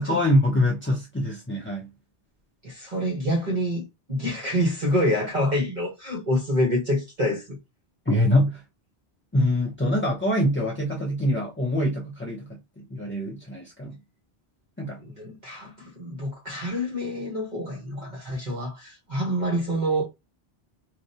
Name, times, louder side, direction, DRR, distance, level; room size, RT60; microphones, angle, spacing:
voice 1, 0.0-1.9 8.1-8.6 9.3-14.0 14.8-15.0, left 1 dB, 15° left, 0.4 m, -24 dB
voice 2, 2.6-7.6 15.0-20.0, equal, 45° right, 1.1 m, -27 dB
4.7 x 2.1 x 2.7 m
omnidirectional pair, 1.1 m